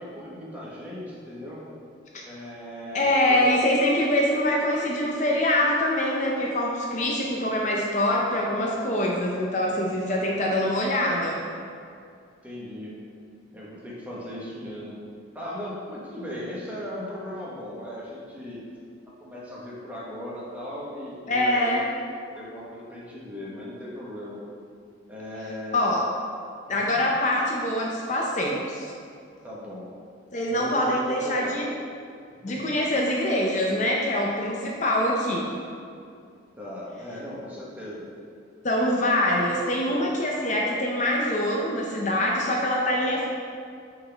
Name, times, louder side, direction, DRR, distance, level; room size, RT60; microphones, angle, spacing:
voice 1, 0.0-1.6 2.3-3.4 12.4-12.9 13.5-15.0 15.3-18.6 19.2-21.8 22.1-24.4 25.1-26.0 26.7-27.0 29.4-29.8 30.5-31.5 32.5-32.7 36.6-38.0, left 1 dB, 10° right, -6 dB, 1.1 m, -37 dB
voice 2, 2.9-11.4 21.3-21.8 25.7-26.1 26.7-28.9 30.3-31.7 32.4-35.5 38.6-43.3, left 1 dB, 40° left, -2 dB, 0.6 m, -24 dB
9.1 x 4.0 x 3.4 m, 2.4 s
head